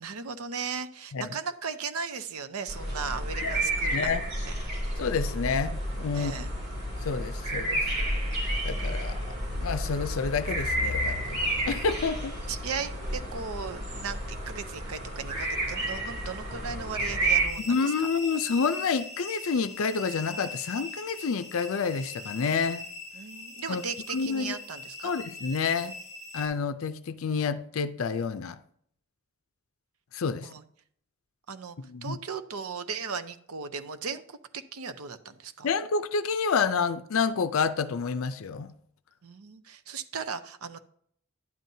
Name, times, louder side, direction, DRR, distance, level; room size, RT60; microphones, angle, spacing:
voice 1, 0.0-4.2 6.1-6.5 12.5-17.7 23.1-25.1 30.4-30.6 31.5-31.8 32.0-35.7 39.2-40.8, right 5 dB, 85° right, 0.6 m, -37 dB
sound 1, 2.7-17.5, right 1 dB, 50° right, 2.7 m, -31 dB
voice 2, 3.9-4.2 5.0-6.3 7.0-8.0 8.6-12.4 17.6-22.8 23.7-23.8 24.1-24.6 25.0-25.9 26.3-28.6 30.1-30.5 31.8-32.2 35.6-38.7, left 5 dB, 70° left, 0.5 m, -29 dB
sound 2, 17.5-26.5, left 3 dB, ahead, 3.9 m, -41 dB
11.0 x 9.1 x 2.7 m
head